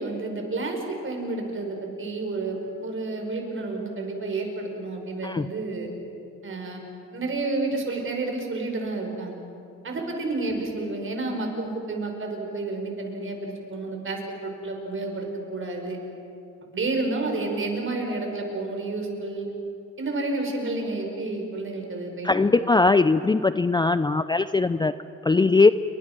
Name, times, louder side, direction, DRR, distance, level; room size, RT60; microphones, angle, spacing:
voice 1, 0.0-5.9 6.4-6.8 7.1-9.4 9.8-16.0 16.6-19.5 20.0-22.5, right 2 dB, 40° right, 2 dB, 5.8 m, -30 dB
voice 2, 22.2-24.9 25.2-25.7, left 3 dB, 15° left, 13 dB, 0.5 m, -20 dB
29.0 x 24.0 x 6.2 m, 2.7 s
cardioid pair, 90°, 30 cm